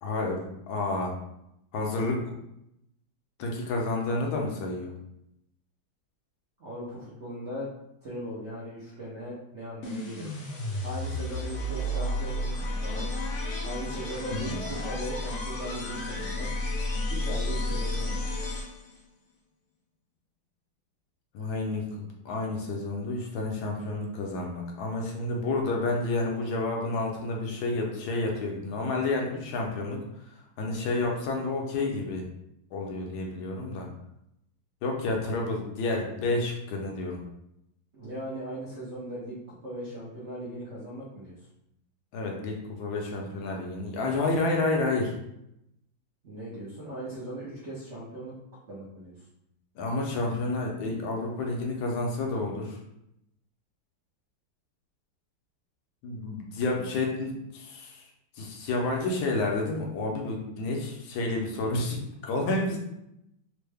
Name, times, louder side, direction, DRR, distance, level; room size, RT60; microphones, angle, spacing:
voice 1, 0.0-1.1 1.7-2.2 3.4-4.9 14.3-14.6 21.3-22.0 22.2-30.0 30.6-32.2 32.7-33.9 34.8-37.2 42.1-45.1 49.8-52.8 56.0-58.1 58.4-62.8, left 2 dB, 75° left, 0 dB, 1.4 m, -30 dB
voice 2, 6.6-7.7 8.0-10.4 10.8-12.6 12.8-13.1 13.6-16.5 17.1-18.2 37.9-41.5 46.2-48.4 48.7-49.3, right 1 dB, 65° right, -7 dB, 0.6 m, -38 dB
sound 1, 9.8-19.0, left 1 dB, 55° left, 0.9 m, -32 dB
3.7 x 2.1 x 3.3 m, 0.81 s
omnidirectional pair, 2.2 m